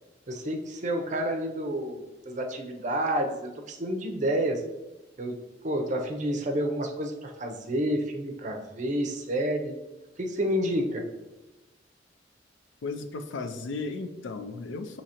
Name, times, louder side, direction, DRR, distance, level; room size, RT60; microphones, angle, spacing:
voice 1, 0.3-4.6 5.2-5.4 5.6-9.7 10.2-11.0, right 1 dB, 40° right, 3 dB, 0.5 m, -29 dB
voice 2, 12.8-15.0, left 3 dB, 85° left, 8 dB, 0.4 m, -35 dB
6.1 x 2.8 x 2.8 m, 1.0 s
head